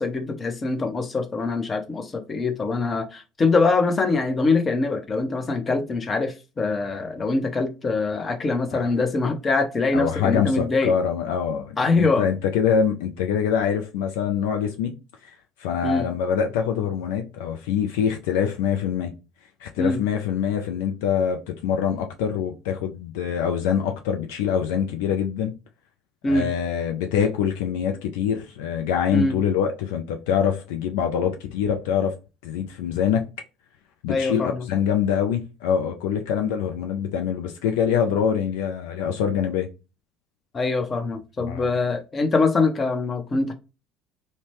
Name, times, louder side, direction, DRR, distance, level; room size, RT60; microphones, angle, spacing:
voice 1, 0.0-10.9 11.8-12.3 15.8-16.0 19.8-20.0 26.2-26.5 29.1-29.4 34.1-34.7 40.5-43.5, left 3 dB, 30° left, 0.7 m, -23 dB
voice 2, 9.9-14.9 15.2-15.3 15.6-19.1 19.6-25.5 26.3-32.2 32.4-33.3 34.0-39.7 41.4-41.7, left 8 dB, 70° left, 0.3 m, -24 dB
2.7 x 2.1 x 3.0 m
hypercardioid pair, 65°, 0 cm